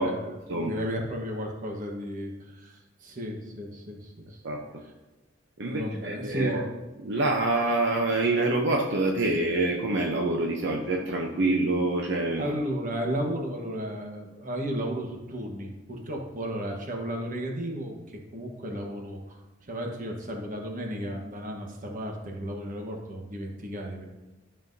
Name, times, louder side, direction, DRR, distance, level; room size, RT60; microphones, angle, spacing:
voice 1, 0.0-4.4 5.6-6.6 12.4-24.0, equal, 45° right, 1 dB, 1.2 m, -34 dB
voice 2, 5.6-6.6 7.0-12.4, right 2 dB, 65° right, 0 dB, 0.8 m, -26 dB
11.5 x 5.6 x 2.7 m, 1.1 s
head